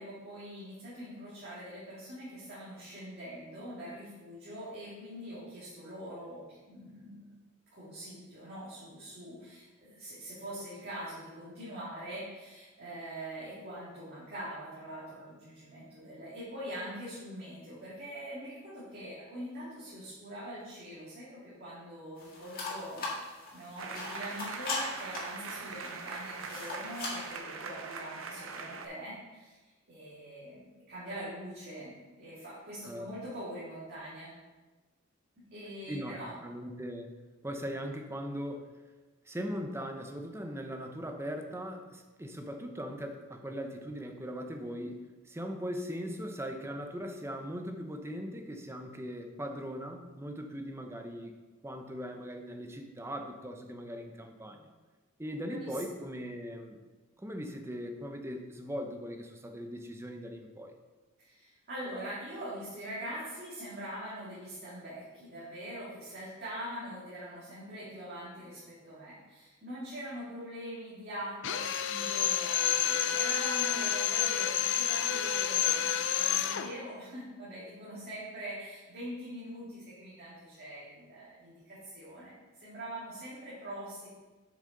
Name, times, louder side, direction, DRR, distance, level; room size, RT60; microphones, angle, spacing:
voice 1, 0.0-7.3 7.7-29.6 29.9-34.3 35.4-36.3 55.5-55.8 61.2-84.1, equal, 50° right, -9 dB, 2.2 m, -43 dB
sound 1, 22.2-27.4, left 3 dB, 45° left, 2.0 m, -40 dB
sound 2, 23.8-28.9, right 4 dB, 75° right, 0.6 m, -42 dB
voice 2, 36.4-37.1 37.4-38.7 39.3-51.3 51.6-54.7 55.2-56.8 57.2-60.7, equal, 15° right, 4 dB, 0.7 m, -39 dB
Drill, 71.4-76.7, left 10 dB, 65° left, 0.5 m, -29 dB
7.0 x 6.5 x 3.9 m, 1.2 s
head